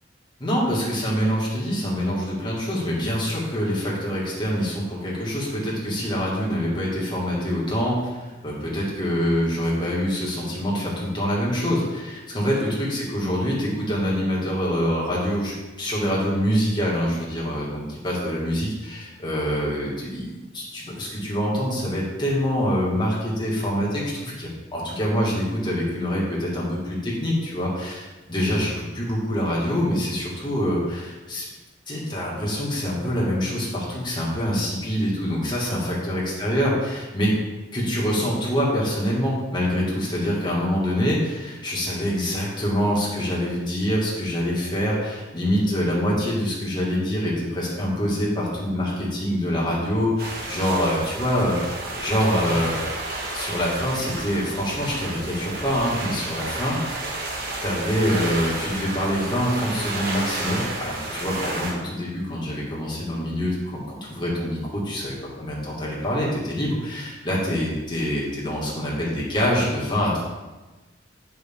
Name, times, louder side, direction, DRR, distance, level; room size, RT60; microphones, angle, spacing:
voice 1, 0.4-8.2 8.4-31.5 31.9-37.4 37.7-52.8 53.3-56.8 57.6-70.2, equal, 25° left, -5 dB, 2.2 m, -25 dB
sound 1, 50.2-61.7, right 2 dB, 60° right, 1.6 m, -31 dB
9.2 x 6.0 x 3.8 m, 1.2 s
head